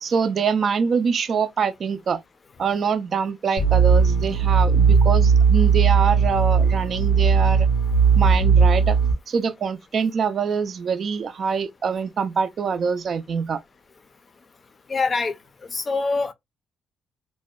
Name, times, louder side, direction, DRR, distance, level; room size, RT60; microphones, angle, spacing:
voice 1, 0.0-2.2 2.6-7.7 8.2-9.0 9.3-13.6, right 6 dB, 50° right, 0.4 m, -24 dB
sound 1, 3.6-9.1, right 5 dB, 90° left, 0.6 m, -17 dB
voice 2, 14.9-15.3 15.7-16.3, left 4 dB, 35° left, 0.5 m, -24 dB
2.6 x 2.1 x 2.3 m
cardioid pair, 90°, 0 cm